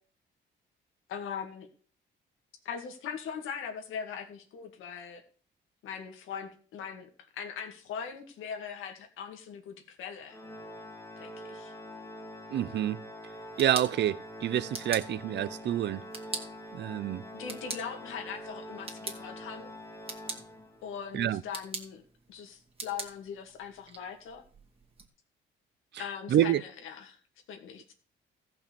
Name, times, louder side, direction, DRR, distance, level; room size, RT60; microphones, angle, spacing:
voice 1, 1.1-1.7 2.6-5.2 5.8-10.4 11.2-11.7 17.3-19.7 20.8-22.0 22.3-24.4 26.0-27.2 27.5-27.9, left 7 dB, 85° left, 2.0 m, -40 dB
Organ, 10.3-21.0, equal, 15° left, 1.9 m, -45 dB
voice 2, 12.5-13.0 13.6-16.0 16.7-17.2 21.1-21.4 25.9-26.0 26.3-26.6, right 11 dB, 60° right, 0.6 m, -28 dB
sound 1, 13.3-25.1, right 3 dB, 30° right, 2.3 m, -44 dB
14.5 x 5.8 x 6.8 m
cardioid pair, 90°, 20 cm